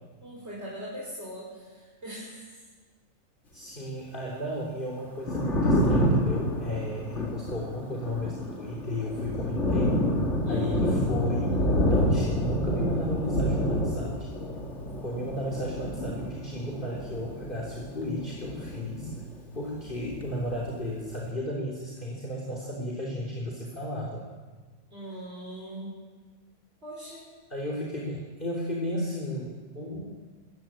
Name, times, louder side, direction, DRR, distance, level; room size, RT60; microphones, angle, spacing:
voice 1, 0.2-2.6 10.5-10.8 24.9-26.0 26.8-27.2, right 1 dB, 50° right, -5 dB, 5.5 m, -40 dB
voice 2, 3.5-10.0 10.5-14.3 15.0-19.1 19.5-24.3 27.5-30.1, left 1 dB, 35° left, -3 dB, 3.6 m, -34 dB
Thunder, 5.0-19.5 19.7-21.0, equal, 55° left, 2.7 m, -28 dB
23.5 x 15.0 x 8.9 m, 1.3 s
omnidirectional pair, 1.4 m